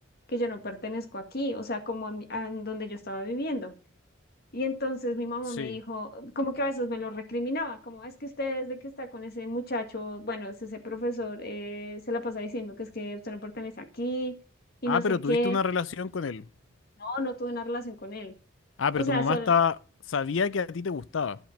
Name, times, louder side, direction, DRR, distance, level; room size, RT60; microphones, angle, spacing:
voice 1, 0.3-3.7 4.5-14.4 14.8-15.6 17.0-18.3 18.9-19.6, left 1 dB, 55° left, 1.9 m, -32 dB
voice 2, 14.9-16.5 18.8-19.7 20.1-21.4, left 6 dB, 90° left, 0.5 m, -27 dB
12.0 x 5.1 x 7.3 m
head